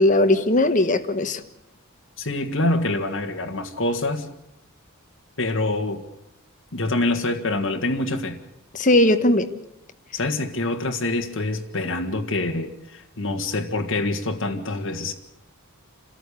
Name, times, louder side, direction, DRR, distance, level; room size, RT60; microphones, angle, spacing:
voice 1, 0.0-1.4 8.7-9.5, left 1 dB, 35° left, 1.4 m, -18 dB
voice 2, 2.2-4.3 5.4-6.0 6.7-8.4 10.1-15.1, left 2 dB, 60° left, 1.8 m, -25 dB
27.5 x 14.0 x 8.4 m
head